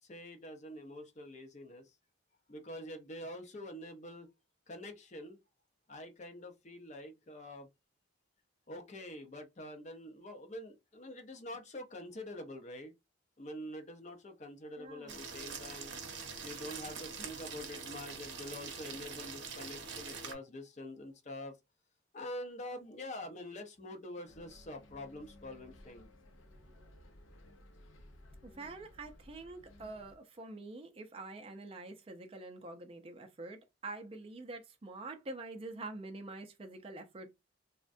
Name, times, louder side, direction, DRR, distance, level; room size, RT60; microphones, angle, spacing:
voice 1, 0.1-1.9 2.5-4.3 4.7-5.4 5.9-7.7 8.7-12.9 13.4-15.9 16.4-21.5 22.1-26.1, left 1 dB, 35° left, 0.5 m, -46 dB
voice 2, 14.8-15.2 28.4-37.3, right 2 dB, 30° right, 0.4 m, -46 dB
sound 1, 15.1-20.3, right 5 dB, 65° right, 0.7 m, -44 dB
Bus, 24.2-30.2, left 1 dB, 85° left, 0.6 m, -57 dB
3.4 x 2.1 x 2.5 m
head